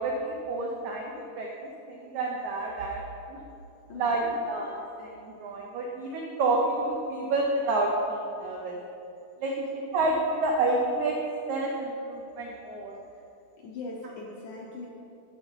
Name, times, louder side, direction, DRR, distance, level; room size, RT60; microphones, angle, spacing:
voice 1, 0.0-3.0 3.3-3.4 3.9-4.7 5.0-8.8 9.4-9.5 9.9-11.2 11.5-12.9, right 2 dB, 90° right, -1 dB, 1.6 m, -29 dB
voice 2, 3.9-4.4 13.6-14.9, left 3 dB, 75° left, -2 dB, 1.9 m, -40 dB
10.5 x 6.5 x 4.5 m, 2.7 s
omnidirectional pair, 4.4 m